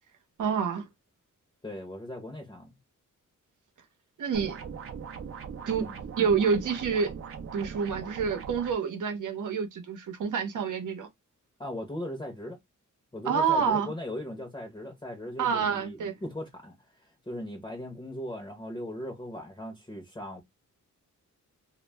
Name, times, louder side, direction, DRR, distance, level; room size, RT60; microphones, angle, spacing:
voice 1, 0.4-0.9 4.2-4.6 5.7-5.9 6.2-7.1 7.5-11.1 13.2-13.9 15.4-16.1, right 6 dB, 75° right, 0.8 m, -28 dB
voice 2, 1.6-2.7 5.8-6.0 11.6-12.6 13.1-20.4, left 1 dB, 15° left, 0.6 m, -38 dB
sound 1, 4.3-8.7, right 6 dB, 45° right, 0.5 m, -40 dB
2.2 x 2.1 x 3.2 m
wide cardioid pair, 120°, 31 cm